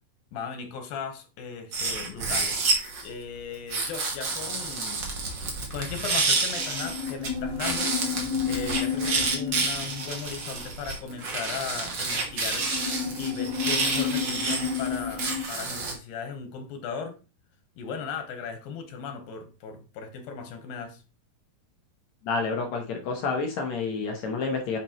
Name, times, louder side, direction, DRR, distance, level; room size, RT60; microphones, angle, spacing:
voice 1, 0.3-2.6 3.0-5.1 5.7-12.7 13.2-17.2 17.8-21.0, left 6 dB, 90° left, 2.9 m, -37 dB
sound 1, 1.7-3.1 3.7-7.3 7.6-15.9, right 3 dB, 55° right, 1.3 m, -29 dB
sound 2, 4.3-5.5 5.7-15.4, left 7 dB, 5° left, 1.8 m, -32 dB
sound 3, 6.8-8.2 8.6-9.8 10.2-11.0, right 2 dB, 80° right, 3.0 m, -43 dB
voice 2, 22.2-24.8, left 4 dB, 70° left, 1.7 m, -29 dB
8.9 x 4.4 x 3.0 m
omnidirectional pair, 4.1 m